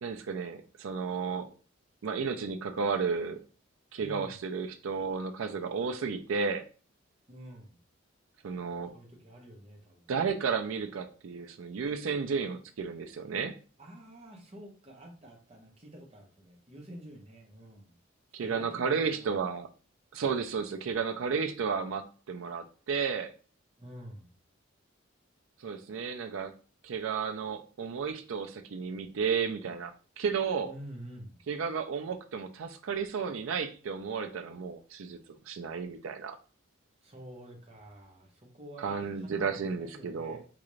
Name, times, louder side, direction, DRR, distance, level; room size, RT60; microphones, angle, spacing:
voice 1, 0.0-1.5 2.0-3.4 3.9-6.7 8.4-8.9 10.1-13.6 18.3-19.7 20.1-23.3 25.6-26.5 26.8-30.7 31.5-35.2 35.5-36.4 38.8-40.4, right 5 dB, 80° right, 6 dB, 0.4 m, -33 dB
voice 2, 4.0-4.3 7.3-7.8 8.9-10.1 13.8-18.0 18.4-19.4 23.8-24.3 30.6-31.4 37.0-40.4, right 1 dB, 30° right, 1 dB, 0.8 m, -48 dB
3.8 x 2.4 x 3.1 m, 0.37 s
head